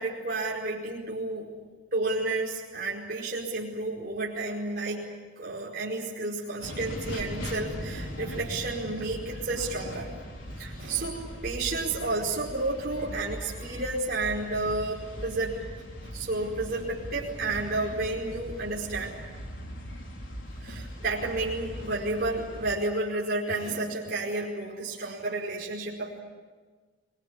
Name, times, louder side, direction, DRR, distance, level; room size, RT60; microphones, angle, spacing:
voice 1, 0.0-1.5 1.9-5.1 5.4-10.1 10.6-19.1 20.6-26.2, right 2 dB, 50° right, -5 dB, 5.0 m, -31 dB
sound 1, 6.6-22.7, equal, 85° left, 4.5 m, -40 dB
24.5 x 22.0 x 9.0 m, 1.4 s
head